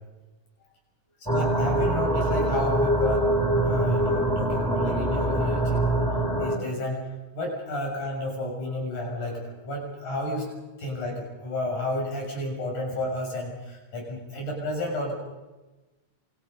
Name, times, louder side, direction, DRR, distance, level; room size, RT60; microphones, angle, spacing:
voice 1, 1.3-3.3 3.6-5.9 6.4-7.1 7.3-10.5 10.8-15.1, left 1 dB, 90° left, 0 dB, 8.4 m, -31 dB
sound 1, 1.3-6.6, right 1 dB, ahead, 5.2 m, -24 dB
28.5 x 28.0 x 5.4 m, 1.1 s
omnidirectional pair, 3.4 m